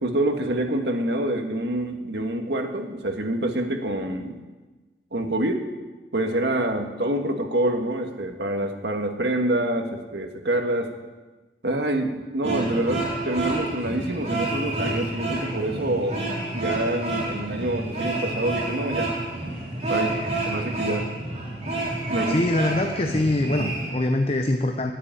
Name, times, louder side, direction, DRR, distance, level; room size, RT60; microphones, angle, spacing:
voice 1, 0.0-4.4 5.1-5.6 6.1-10.9 11.6-16.2 16.5-19.1 19.9-20.2 20.4-21.1 22.1-22.4, right 1 dB, 70° right, 4 dB, 1.6 m, -26 dB
sound 1, 12.4-23.9, right 2 dB, 40° right, 3.5 m, -29 dB
voice 2, 22.3-24.9, left 1 dB, 35° left, 5 dB, 0.7 m, -23 dB
10.0 x 10.0 x 9.0 m, 1.2 s
head